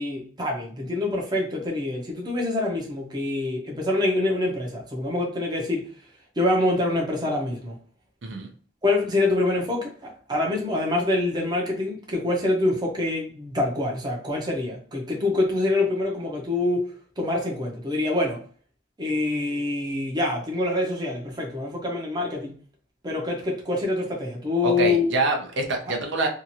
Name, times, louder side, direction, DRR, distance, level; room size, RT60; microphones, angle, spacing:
voice 1, 0.0-5.9 6.4-7.8 8.8-16.9 17.2-18.4 19.0-22.6 23.0-25.1, left 2 dB, 20° right, 0.6 m, -25 dB
voice 2, 24.6-26.3, right 2 dB, 70° right, 0.6 m, -25 dB
2.8 x 2.4 x 2.8 m
head